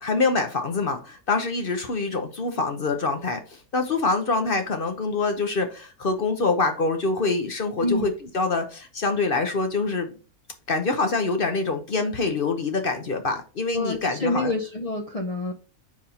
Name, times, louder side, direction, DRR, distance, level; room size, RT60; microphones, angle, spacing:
voice 1, 0.0-3.4 3.7-10.1 10.7-14.5, left 3 dB, 45° left, 0.8 m, -25 dB
voice 2, 13.7-15.5, left 2 dB, 60° left, 0.3 m, -27 dB
5.3 x 4.9 x 4.2 m
omnidirectional pair, 1.6 m